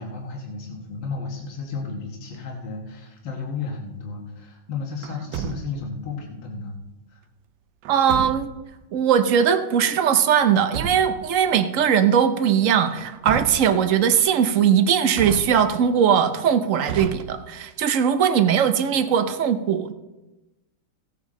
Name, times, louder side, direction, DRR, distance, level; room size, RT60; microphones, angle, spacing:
voice 1, 0.0-6.8 7.1-7.2 11.8-11.9, left 4 dB, 80° left, 0 dB, 2.1 m, -33 dB
Truck, 5.0-6.0 7.8-8.7 10.3-11.3 12.9-13.9 15.1-16.0 16.8-17.7, right 8 dB, 85° right, 1.4 m, -33 dB
voice 2, 7.9-8.5 8.9-19.9, right 8 dB, 60° right, 10 dB, 0.9 m, -20 dB
16.0 x 8.1 x 3.7 m, 1.0 s
omnidirectional pair, 2.0 m